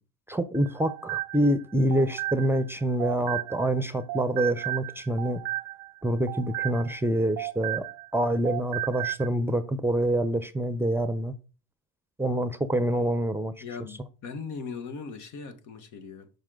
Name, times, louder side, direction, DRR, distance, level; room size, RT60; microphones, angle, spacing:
voice 1, 0.3-5.4 6.0-11.3 12.2-13.5, right 1 dB, 5° right, 0.6 m, -26 dB
sound 1, 0.5-3.8 4.1-8.2 8.4-9.3, right 17 dB, 75° right, 0.5 m, -34 dB
voice 2, 13.6-16.3, left 5 dB, 70° left, 1.3 m, -39 dB
6.2 x 5.3 x 3.7 m
cardioid pair, 100°, 31 cm